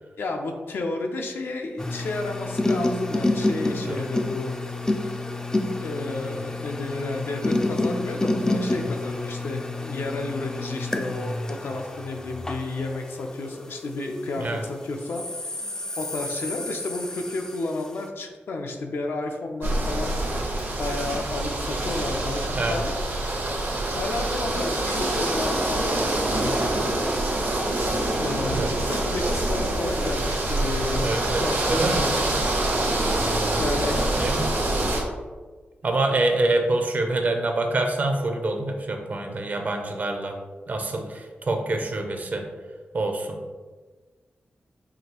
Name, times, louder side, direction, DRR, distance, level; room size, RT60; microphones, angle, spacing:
voice 1, 0.2-4.5 5.8-15.2 15.6-15.7 16.0-20.2 20.8-23.0 23.9-26.8 28.2-32.2 33.6-34.4, left 2 dB, 75° left, 3 dB, 0.5 m, -32 dB
sound 1, 1.8-14.4 15.0-17.9, left 2 dB, 15° left, 0.3 m, -29 dB
sound 2, 19.6-35.0, right 1 dB, 75° right, 0.9 m, -25 dB
voice 2, 31.0-32.4 33.1-33.6 34.2-34.5 35.8-40.4 40.7-42.5 42.9-43.4, right 2 dB, 45° right, 4 dB, 0.5 m, -26 dB
4.9 x 2.6 x 2.9 m, 1.4 s
wide cardioid pair, 115°, 4 cm